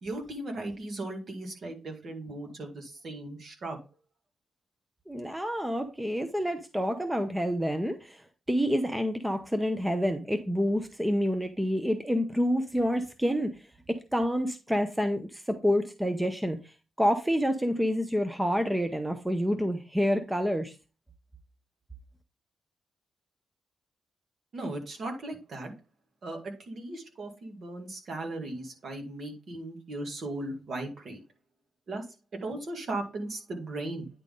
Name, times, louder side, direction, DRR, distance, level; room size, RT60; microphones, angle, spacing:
voice 1, 0.0-3.8 24.5-25.7 26.2-31.2 31.9-32.0 32.3-34.1, right 2 dB, 55° right, 2.0 m, -37 dB
voice 2, 5.1-8.2 8.5-13.5 13.9-16.6 17.0-20.7, equal, 5° right, 0.7 m, -28 dB
9.5 x 3.8 x 3.8 m
cardioid pair, 125°, 0 cm